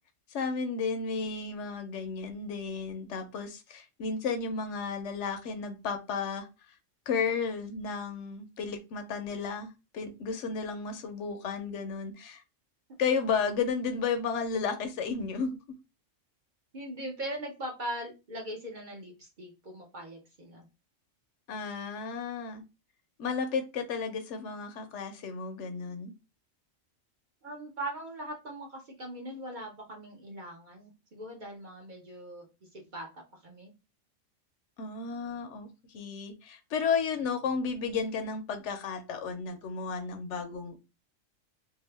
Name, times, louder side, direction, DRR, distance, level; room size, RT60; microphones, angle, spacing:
voice 1, 0.3-6.5 7.1-12.4 13.0-15.5 21.5-22.6 23.2-26.1 34.8-40.8, left 5 dB, 70° left, 0.9 m, -33 dB
voice 2, 16.7-20.6 27.4-32.5 32.7-33.7, right 1 dB, 45° right, 0.8 m, -40 dB
2.7 x 2.4 x 3.2 m
omnidirectional pair, 1.3 m